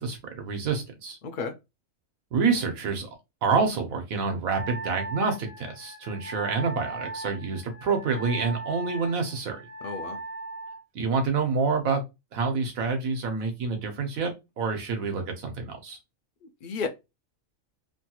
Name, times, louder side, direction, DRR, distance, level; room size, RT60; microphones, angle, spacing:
voice 1, 0.0-1.2 2.3-3.1 3.4-9.6 10.9-12.0 12.3-16.0, right 4 dB, 85° right, 1.3 m, -27 dB
voice 2, 1.2-1.5 9.8-10.2 16.4-16.9, left 5 dB, 75° left, 0.4 m, -33 dB
Wind instrument woodwind instrument, 4.5-10.8, right 2 dB, 35° right, 0.7 m, -38 dB
3.1 x 2.3 x 2.8 m
omnidirectional pair, 1.4 m